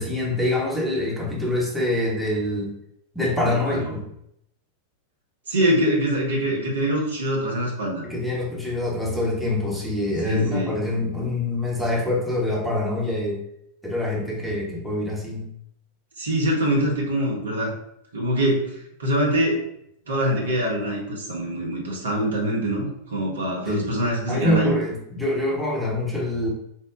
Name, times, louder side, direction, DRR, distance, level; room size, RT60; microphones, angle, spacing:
voice 1, 0.0-2.7 3.1-4.0 8.0-13.4 13.8-15.4 23.7-23.8 24.3-26.5, left 1 dB, ahead, -3 dB, 1.1 m, -25 dB
voice 2, 3.5-4.0 5.5-8.0 10.2-10.8 16.2-17.7 18.1-19.6 20.1-24.7, right 1 dB, 70° right, -2 dB, 1.0 m, -24 dB
4.3 x 2.2 x 3.6 m, 0.74 s
figure-of-eight pair, 90°, 0 cm